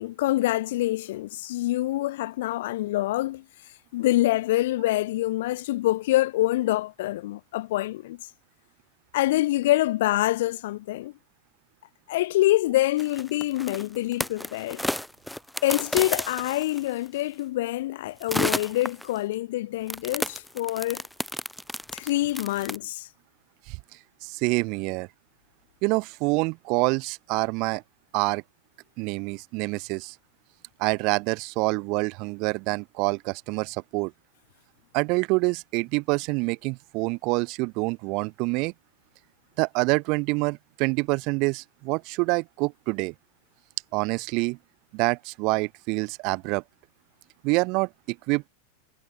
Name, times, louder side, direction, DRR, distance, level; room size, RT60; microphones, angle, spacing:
voice 1, 0.0-3.4 3.9-8.2 9.1-11.1 12.1-14.9 15.6-21.0 21.9-23.1, left 16 dB, 55° left, 3.5 m, -26 dB
sound 1, 13.0-17.1 18.2-19.2 19.9-22.8, left 1 dB, ahead, 2.8 m, -32 dB
voice 2, 24.2-25.1 25.8-27.8 28.1-28.4 29.0-30.2 30.8-34.1 34.9-38.7 39.6-43.1 43.9-44.6 44.9-46.6 47.4-48.4, right 28 dB, 45° right, 1.9 m, -26 dB
figure-of-eight pair, 90°, 0 cm